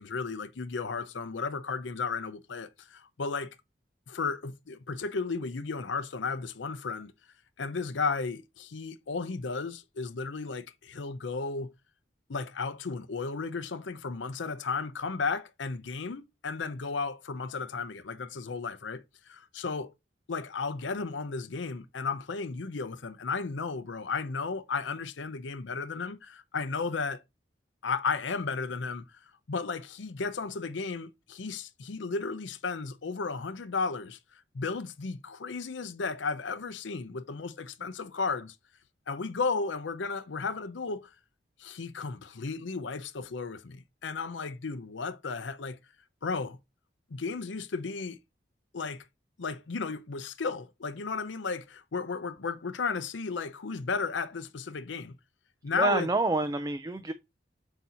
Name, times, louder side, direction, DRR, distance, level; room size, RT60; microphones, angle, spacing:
voice 1, 0.0-3.5 4.1-7.1 7.6-11.7 12.3-19.9 20.3-27.2 27.8-38.6 39.1-41.1 41.6-45.8 46.2-46.6 47.1-48.2 48.7-49.0 49.4-55.1 55.6-56.1, left 4 dB, 85° left, 0.6 m, -34 dB
voice 2, 55.7-57.1, right 3 dB, 20° right, 0.3 m, -28 dB
7.9 x 2.8 x 4.2 m
head